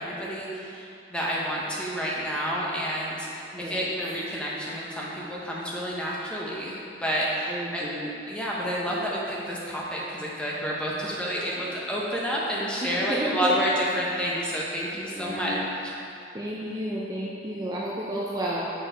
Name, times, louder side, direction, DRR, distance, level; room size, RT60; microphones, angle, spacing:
voice 1, 0.0-7.9 8.3-15.5 15.8-15.9, equal, 5° left, -5 dB, 1.0 m, -29 dB
voice 2, 3.5-3.9 7.4-8.1 11.2-11.8 12.8-13.6 15.1-15.7 16.3-18.6, right 1 dB, 20° right, -5 dB, 0.6 m, -32 dB
6.8 x 4.5 x 5.1 m, 2.6 s
head